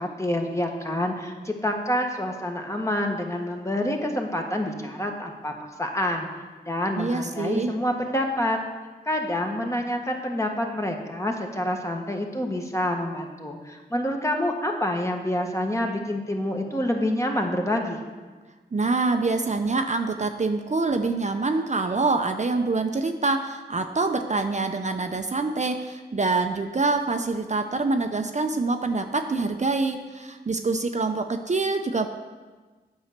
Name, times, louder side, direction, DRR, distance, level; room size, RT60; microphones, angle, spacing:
voice 1, 0.0-5.5 5.8-6.3 6.7-8.6 9.0-18.0, left 1 dB, 15° left, 2 dB, 1.5 m, -27 dB
voice 2, 7.0-7.7 18.7-32.1, right 3 dB, 40° right, 6 dB, 0.6 m, -25 dB
8.8 x 5.6 x 6.7 m, 1.3 s
cardioid pair, 45°, 18 cm